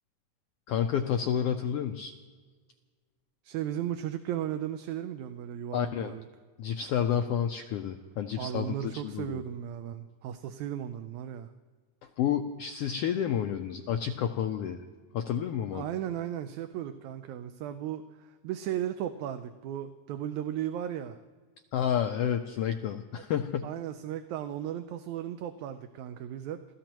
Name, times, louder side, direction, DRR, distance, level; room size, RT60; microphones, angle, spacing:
voice 1, 0.7-2.1 5.7-6.1 6.6-9.4 12.2-14.8 15.1-15.8 21.7-23.7, left 9 dB, 85° left, 6 dB, 1.3 m, -30 dB
voice 2, 3.4-6.3 8.4-11.5 15.7-21.2 23.1-23.2 23.6-26.6, right 10 dB, 80° right, 8 dB, 2.0 m, -36 dB
29.5 x 15.5 x 3.0 m, 1.5 s
omnidirectional pair, 3.4 m